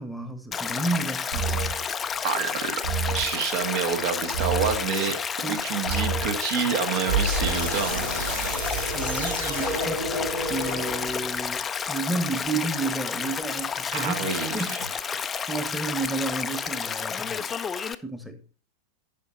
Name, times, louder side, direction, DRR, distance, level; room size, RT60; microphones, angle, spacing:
voice 1, 0.0-1.7 5.4-5.6 8.9-10.1 10.5-14.8 15.1-17.5 18.0-18.4, right 3 dB, ahead, 1.3 m, -31 dB
Stream, 0.5-18.0, left 6 dB, 20° left, 0.5 m, -31 dB
sound 1, 1.3-1.9 2.8-3.4 4.3-4.9 5.9-6.4 7.1-11.5, right 3 dB, 75° right, 5.4 m, -29 dB
voice 2, 2.2-2.8 3.1-5.2 5.5-8.0 13.9-14.8, right 6 dB, 50° right, 1.5 m, -28 dB
11.0 x 5.6 x 4.0 m
figure-of-eight pair, 90°, 0 cm